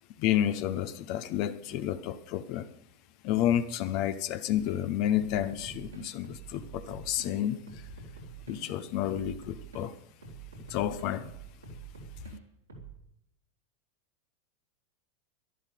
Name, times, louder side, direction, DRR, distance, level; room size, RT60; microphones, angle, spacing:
voice 1, 0.2-2.7 3.2-7.6 8.5-9.9 10.7-11.2, left 11 dB, 50° left, 0.8 m, -30 dB
sound 1, 4.6-4.8 5.2-7.3 7.7-9.8 10.2-12.3 12.7-12.9, right 5 dB, 80° right, 3.3 m, -46 dB
12.0 x 11.0 x 6.5 m
figure-of-eight pair, 90°, 0 cm